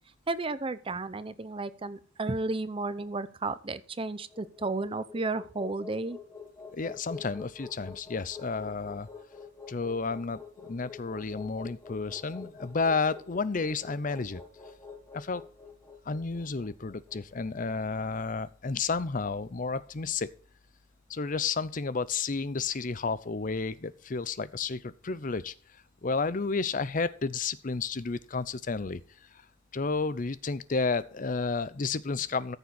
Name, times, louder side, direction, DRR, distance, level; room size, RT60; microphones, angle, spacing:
voice 1, 0.3-6.2, right 3 dB, 25° right, 15 dB, 0.6 m, -33 dB
sound 1, 3.9-18.2, left 5 dB, 15° left, 1.6 m, -47 dB
voice 2, 6.7-9.1 9.7-14.4 15.1-15.4 16.1-20.3 21.1-25.5 26.0-29.0 29.7-32.6, left 4 dB, 40° left, 16 dB, 0.6 m, -31 dB
14.0 x 6.7 x 4.1 m, 0.43 s
head